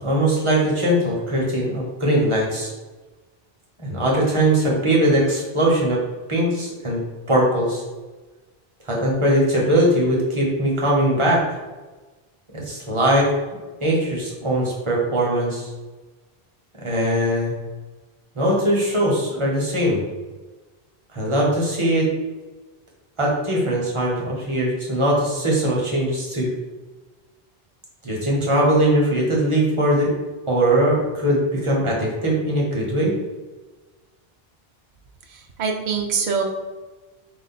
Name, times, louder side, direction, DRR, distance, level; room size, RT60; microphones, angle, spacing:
voice 1, 0.0-2.7 3.8-6.0 6.3-7.0 7.3-7.8 8.9-11.4 12.5-13.3 13.8-15.7 16.8-17.5 18.3-20.0 21.1-22.1 23.2-26.5 28.0-30.1 30.5-33.1, right 1 dB, 30° right, -4 dB, 1.1 m, -20 dB
voice 2, 35.3-36.4, right 6 dB, 55° right, 2 dB, 0.7 m, -24 dB
3.9 x 2.5 x 4.1 m, 1.2 s
omnidirectional pair, 1.0 m